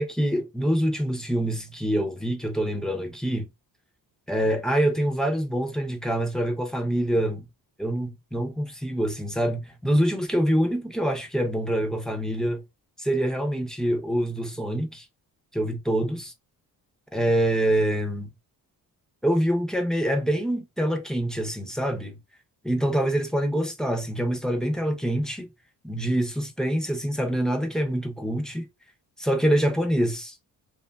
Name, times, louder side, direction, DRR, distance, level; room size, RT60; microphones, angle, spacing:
voice 1, 0.0-3.5 4.3-7.5 7.8-12.6 13.0-15.1 15.5-16.3 17.1-18.3 19.2-22.2 22.6-25.5 25.8-28.7 29.2-30.4, right 1 dB, ahead, 0.3 m, -25 dB
2.9 x 2.2 x 2.2 m
cardioid pair, 145°, 37 cm